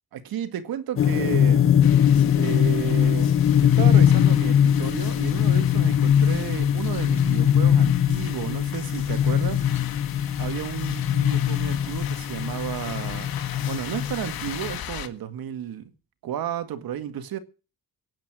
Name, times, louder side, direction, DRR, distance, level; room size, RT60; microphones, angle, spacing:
voice 1, 0.1-1.7 2.4-9.7 10.4-13.3 13.7-15.9 16.2-17.4, right 10 dB, 70° right, 2.0 m, -32 dB
sound 1, 1.0-14.8, left 9 dB, 35° left, 0.7 m, -21 dB
sound 2, 1.8-15.1, left 10 dB, 70° left, 1.8 m, -38 dB
18.0 x 10.5 x 6.2 m
cardioid pair, 130°, 37 cm